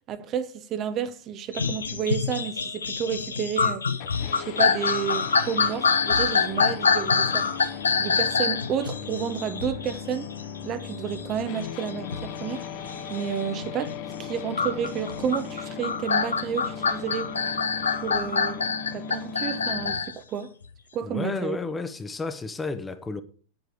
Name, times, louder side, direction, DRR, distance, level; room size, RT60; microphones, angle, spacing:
voice 1, 0.1-3.8 4.5-7.6 8.0-10.3 10.6-12.7 13.1-17.3 18.0-18.6 18.9-20.5 20.9-21.6, right 8 dB, 35° right, 0.8 m, -31 dB
sound 1, 1.5-13.9 14.6-20.1 20.6-20.7, left 5 dB, 75° left, 0.9 m, -26 dB
sound 2, 4.0-20.0, left 7 dB, 45° left, 1.2 m, -37 dB
voice 2, 21.0-23.2, left 4 dB, 15° left, 0.9 m, -32 dB
9.1 x 7.9 x 6.6 m
figure-of-eight pair, 90°, 0 cm